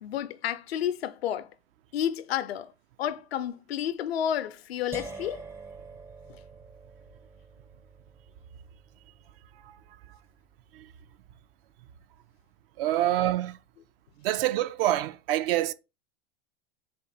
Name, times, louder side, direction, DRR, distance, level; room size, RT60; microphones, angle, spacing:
voice 1, 0.0-1.5 1.9-2.7 3.0-5.5 6.3-6.4 12.9-13.1, left 10 dB, 85° left, 0.6 m, -31 dB
sound 1, 4.9-10.9, right 3 dB, 10° right, 0.4 m, -47 dB
voice 2, 12.8-13.6 14.2-15.7, right 14 dB, 65° right, 0.5 m, -26 dB
4.3 x 2.6 x 4.8 m
hypercardioid pair, 110°, 30 cm